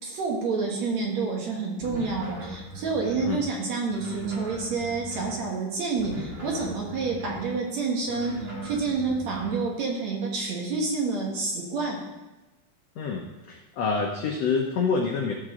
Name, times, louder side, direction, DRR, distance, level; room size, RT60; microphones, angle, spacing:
voice 1, 0.0-12.0, right 4 dB, 60° right, -1 dB, 2.4 m, -28 dB
sound 1, 1.8-3.4 3.9-5.5 6.0-7.6 8.1-9.6, right 1 dB, 30° right, 1.5 m, -39 dB
voice 2, 12.9-15.3, left 5 dB, 85° left, 1 dB, 1.4 m, -27 dB
13.5 x 6.7 x 3.7 m, 1.0 s
omnidirectional pair, 4.0 m